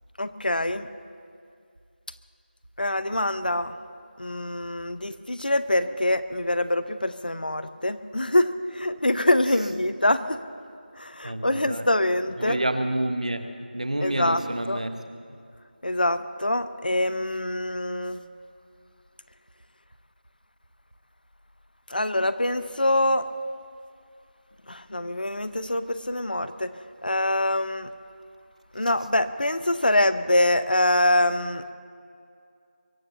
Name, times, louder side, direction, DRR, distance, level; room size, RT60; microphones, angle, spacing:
voice 1, 0.2-0.9 2.8-3.8 4.2-10.4 11.0-12.6 14.0-14.4 14.7-14.8 15.8-18.2 21.9-23.2 24.7-26.7 27.0-27.9 28.7-31.7, left 1 dB, 55° left, 12 dB, 0.8 m, -24 dB
voice 2, 11.2-11.9 12.4-15.0, right 1 dB, 45° right, 8 dB, 1.0 m, -28 dB
23.0 x 8.7 x 6.8 m, 2.3 s
figure-of-eight pair, 180°, 6 cm